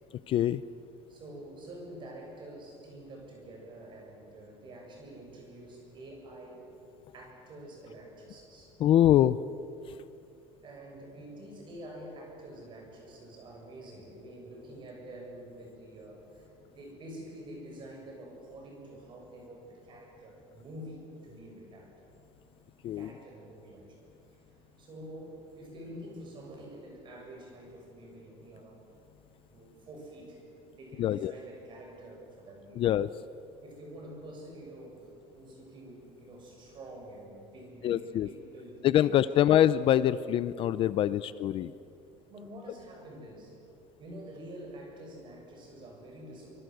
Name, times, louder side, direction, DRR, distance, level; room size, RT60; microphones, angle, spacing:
voice 1, 0.3-0.6 8.8-9.4 22.8-23.1 31.0-31.3 32.8-33.1 37.8-38.3 38.8-41.7, left 11 dB, 40° left, 15 dB, 0.5 m, -24 dB
voice 2, 1.1-6.7 7.1-8.7 10.6-22.1 22.8-24.1 24.8-28.9 29.5-30.4 30.7-32.9 33.6-39.1 39.5-39.6 41.1-41.2 42.3-43.6 44.0-46.6, right 1 dB, 35° right, 1 dB, 7.1 m, -47 dB
26.0 x 25.0 x 7.9 m, 2.6 s
cardioid pair, 165°, 14 cm